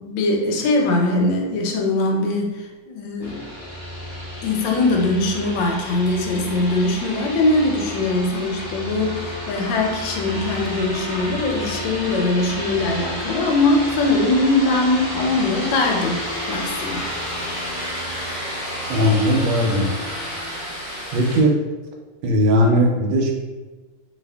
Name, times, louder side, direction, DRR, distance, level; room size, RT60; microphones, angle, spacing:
voice 1, 0.0-3.4 4.4-16.2 16.5-17.0, left 2 dB, 75° left, 1 dB, 1.2 m, -21 dB
sound 1, 3.2-21.4, left 1 dB, 20° left, 1.0 m, -31 dB
voice 2, 18.9-19.9 21.1-21.5 22.2-23.3, equal, 90° right, 1 dB, 1.4 m, -18 dB
2.7 x 2.7 x 3.3 m, 1.2 s
omnidirectional pair, 2.1 m